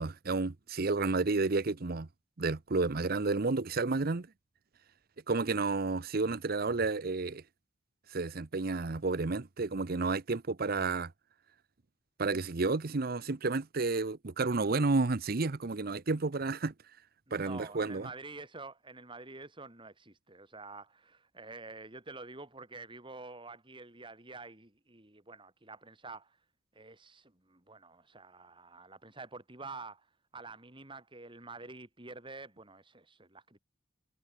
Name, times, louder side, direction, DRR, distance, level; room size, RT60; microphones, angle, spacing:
voice 1, 0.0-2.1 2.4-4.3 5.3-7.4 8.1-11.1 12.2-16.7 17.3-18.1, right 3 dB, 50° right, 0.8 m, -31 dB
voice 2, 17.3-26.4 26.7-30.1 30.3-33.6, right 3 dB, 25° right, 4.0 m, -48 dB
head